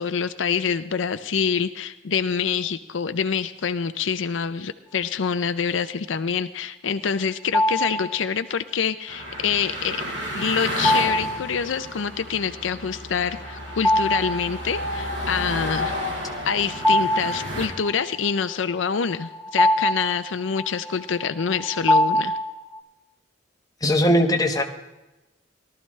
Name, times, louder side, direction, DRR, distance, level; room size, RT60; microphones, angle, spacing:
voice 1, 0.0-10.0 10.3-15.9 16.4-22.3, left 6 dB, 70° left, 11 dB, 0.5 m, -26 dB
sound 1, 7.5-8.2 10.8-11.5 13.7-14.5 14.8-14.9 16.4-17.9 18.9-22.8, left 1 dB, 5° right, 1.0 m, -23 dB
sound 2, 9.1-17.7, equal, 70° right, 4.9 m, -31 dB
voice 2, 23.8-24.6, equal, 20° left, 2 dB, 1.3 m, -19 dB
18.0 x 13.0 x 3.2 m, 1.0 s
head